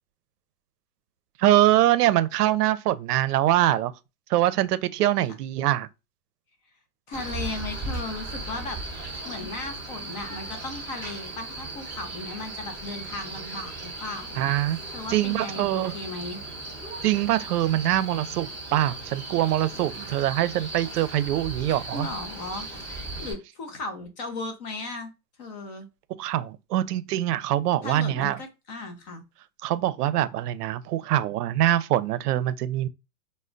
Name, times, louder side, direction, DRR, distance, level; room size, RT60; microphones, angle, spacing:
voice 1, 1.4-3.9 4.3-5.9 14.4-14.8 15.1-16.0 17.0-22.1 26.2-28.4 29.6-32.9, right 13 dB, 85° right, 0.5 m, -23 dB
voice 2, 7.1-8.8 9.2-14.4 14.9-15.7 15.9-16.4 21.9-22.7 23.2-25.1 25.4-25.9 27.8-29.2, left 3 dB, 30° left, 0.5 m, -36 dB
Male speech man speaking, 7.1-23.3, right 2 dB, 5° left, 0.8 m, -37 dB
2.2 x 2.0 x 3.7 m
supercardioid pair, 150°, 46 cm